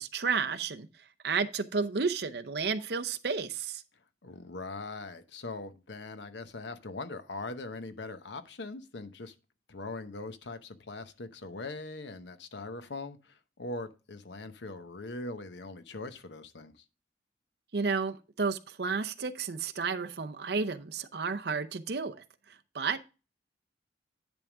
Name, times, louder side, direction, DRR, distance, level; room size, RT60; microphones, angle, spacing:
voice 1, 0.0-3.8 17.7-23.0, right 5 dB, 65° right, 0.7 m, -32 dB
voice 2, 4.2-9.3 9.7-16.8, left 3 dB, 80° left, 0.9 m, -41 dB
10.5 x 3.5 x 6.0 m
head